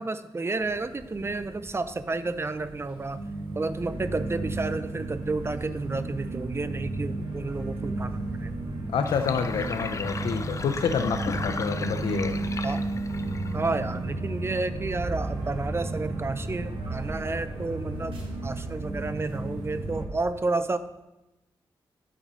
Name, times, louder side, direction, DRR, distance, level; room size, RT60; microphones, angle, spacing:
voice 1, 0.0-3.2 3.5-8.5 12.6-12.8 13.5-20.8, right 3 dB, 30° right, 12 dB, 0.6 m, -31 dB
sound 1, 0.6-20.0, right 2 dB, 80° right, 1.9 m, -33 dB
voice 2, 8.9-12.4, left 6 dB, 90° left, 8 dB, 0.6 m, -28 dB
Sink (filling or washing), 9.0-14.0, left 4 dB, 35° left, 0.5 m, -36 dB
10.0 x 4.1 x 6.2 m, 0.99 s
cardioid pair, 70°, 9 cm